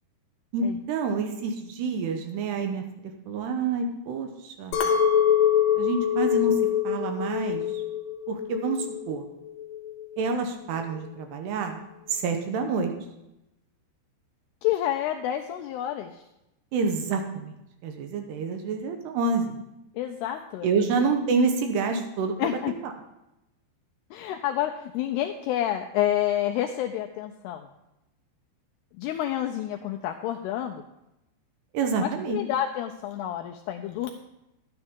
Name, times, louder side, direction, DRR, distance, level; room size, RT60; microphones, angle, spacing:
voice 1, 0.5-2.8 3.3-4.8 5.8-6.6 6.8-7.8 8.3-9.2 10.2-11.8 12.1-12.9 16.7-19.6 20.6-22.9 31.7-32.4, right 4 dB, 75° right, 5 dB, 2.7 m, -28 dB
Chink clink, 4.7-9.1 9.5-10.1, left 9 dB, 70° left, 2.8 m, -24 dB
voice 2, 14.6-16.2 20.0-20.7 22.4-22.7 24.1-27.7 29.0-30.8 32.0-34.1, left 12 dB, 85° left, 4 dB, 2.3 m, -29 dB
11.5 x 9.8 x 3.6 m, 0.89 s
omnidirectional pair, 5.2 m